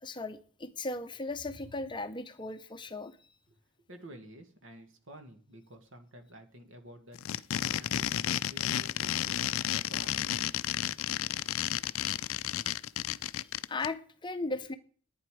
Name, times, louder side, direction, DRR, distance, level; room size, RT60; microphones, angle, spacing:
voice 1, 0.0-3.1 13.7-14.7, left 2 dB, 20° left, 0.6 m, -37 dB
voice 2, 3.9-7.2 7.6-10.1, equal, 65° right, 1.7 m, -51 dB
sound 1, 7.1-13.9, left 11 dB, 75° left, 0.4 m, -32 dB
11.0 x 9.5 x 4.8 m
head